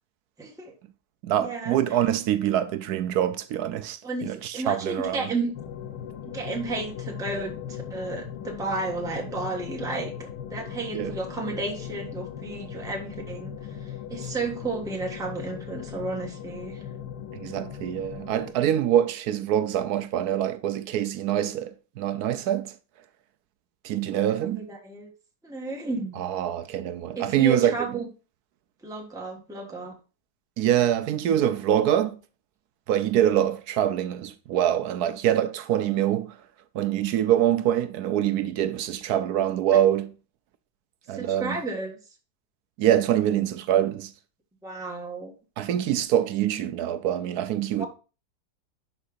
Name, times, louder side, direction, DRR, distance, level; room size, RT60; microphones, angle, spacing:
voice 1, 0.4-0.7 1.4-2.0 4.0-5.5 6.2-16.8 24.3-25.1 25.4-26.2 27.1-28.1 28.8-30.0 39.7-39.8 41.1-41.9 44.6-45.3 47.8-47.9, right 3 dB, ahead, 1.2 m, -33 dB
voice 2, 1.2-5.2 10.9-11.1 17.3-22.7 23.8-24.7 26.2-27.7 30.6-32.2 32.9-36.4 36.7-40.1 41.1-41.6 42.8-44.1 45.6-47.9, right 11 dB, 75° right, 1.1 m, -24 dB
sound 1, 5.5-18.5, left 9 dB, 90° left, 1.4 m, -38 dB
11.0 x 4.8 x 2.5 m
omnidirectional pair, 1.8 m